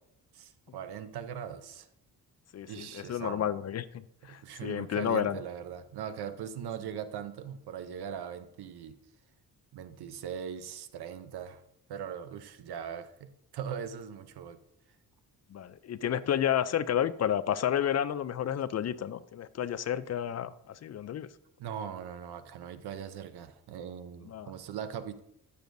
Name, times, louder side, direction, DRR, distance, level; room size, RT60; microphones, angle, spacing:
voice 1, 0.3-1.9 2.7-3.5 4.3-9.0 9.7-11.6 11.9-14.6 21.6-25.2, right 8 dB, 75° right, 0.7 m, -40 dB
voice 2, 2.5-5.4 15.5-21.3 24.3-24.5, left 10 dB, 45° left, 0.4 m, -31 dB
14.0 x 6.8 x 2.6 m
cardioid pair, 110°, 39 cm